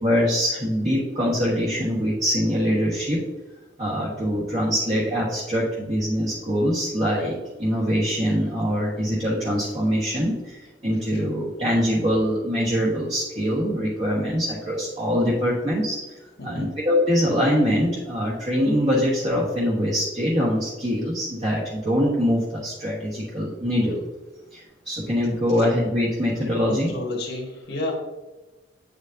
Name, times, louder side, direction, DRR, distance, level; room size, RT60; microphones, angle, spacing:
voice 1, 0.0-3.2 3.8-16.2 16.4-24.1 24.5-26.9, equal, 40° right, -6 dB, 1.4 m, -23 dB
voice 2, 16.4-16.7 26.7-27.9, left 2 dB, 60° left, -1 dB, 1.4 m, -31 dB
8.7 x 5.1 x 2.7 m, 1.1 s
head